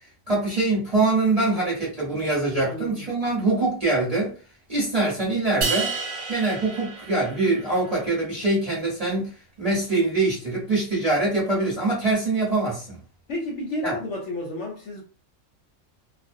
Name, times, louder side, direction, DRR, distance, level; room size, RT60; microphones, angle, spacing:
voice 1, 0.3-4.3 4.7-5.9 6.3-9.3 9.6-13.0 13.8-13.9, right 2 dB, 30° right, 0.9 m, -24 dB
voice 2, 2.6-3.0 13.3-15.0, left 1 dB, 65° left, 0.8 m, -31 dB
sound 1, 5.6-7.9, right 4 dB, 65° right, 1.1 m, -30 dB
2.4 x 2.0 x 2.5 m
omnidirectional pair, 1.5 m